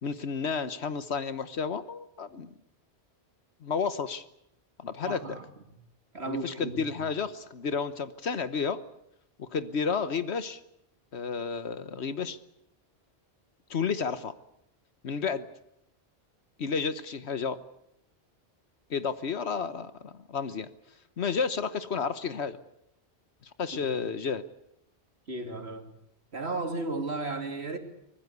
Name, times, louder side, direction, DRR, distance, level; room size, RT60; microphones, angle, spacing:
voice 1, 0.0-2.5 3.6-4.2 4.8-5.4 6.2-8.8 9.4-10.6 11.1-12.4 13.7-14.3 15.0-15.5 16.6-17.6 18.9-20.7 21.2-22.6 23.6-24.4, left 5 dB, 75° left, 1.4 m, -31 dB
voice 2, 5.1-5.5 6.1-7.1 23.8-23.9 25.3-25.9 26.3-27.8, right 2 dB, 70° right, 3.2 m, -34 dB
25.0 x 20.0 x 8.3 m
omnidirectional pair, 1.1 m